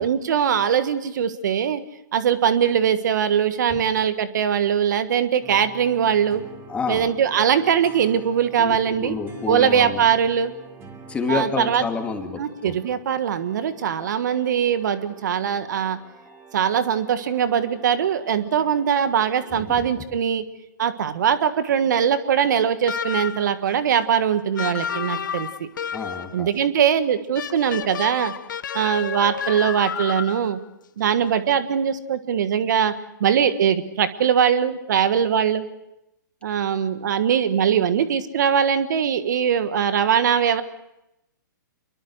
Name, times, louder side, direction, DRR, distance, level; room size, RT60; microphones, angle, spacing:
voice 1, 0.0-1.8 2.1-6.4 6.9-9.2 9.5-10.5 11.3-11.8 12.4-16.0 16.5-20.4 20.8-25.7 26.3-28.3 28.7-30.6 31.0-32.9 33.2-35.6 36.4-40.6, right 8 dB, 60° right, 11 dB, 1.5 m, -21 dB
sound 1, 5.4-20.0, right 4 dB, 20° right, 3.3 m, -47 dB
voice 2, 6.7-7.1 8.6-10.1 11.1-12.7 19.5-20.0 25.9-26.5, left 4 dB, 10° left, 3 dB, 2.7 m, -29 dB
sound 2, 22.9-23.6 24.6-26.4 27.3-30.5, left 7 dB, 70° left, 1.0 m, -31 dB
26.0 x 22.5 x 6.5 m, 0.87 s
hypercardioid pair, 135°, 11 cm